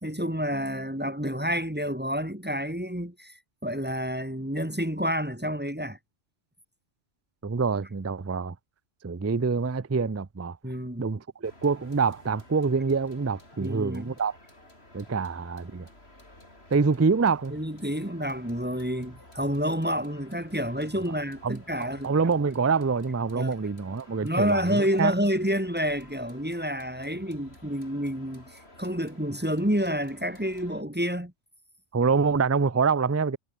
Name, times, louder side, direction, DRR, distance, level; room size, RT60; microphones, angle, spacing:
voice 1, 0.0-6.0 10.6-11.1 13.6-14.1 17.5-22.1 23.3-23.5 24.2-31.3, equal, 10° right, 1.9 m, -29 dB
voice 2, 7.4-8.5 9.0-10.6 11.0-14.3 14.9-15.9 16.7-17.6 21.4-25.1 31.9-33.4, right 5 dB, 25° right, 0.3 m, -26 dB
sound 1, 11.4-30.8, left 1 dB, 55° left, 7.4 m, -53 dB
omnidirectional pair, 1.3 m